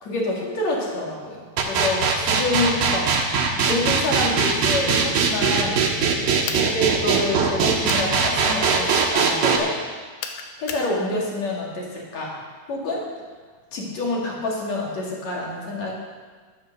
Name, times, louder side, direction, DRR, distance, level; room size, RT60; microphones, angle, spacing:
voice 1, 0.0-3.1 3.6-5.9 6.5-9.8 10.6-12.4 12.7-13.0 13.7-15.9, left 2 dB, 50° left, -3 dB, 3.3 m, -27 dB
sound 1, 1.6-9.6, right 5 dB, 70° right, 2.9 m, -20 dB
sound 2, 6.4-6.7 7.8-8.1 10.2-10.9, left 6 dB, 75° left, 2.7 m, -32 dB
11.0 x 11.0 x 6.7 m, 1.5 s
omnidirectional pair, 4.4 m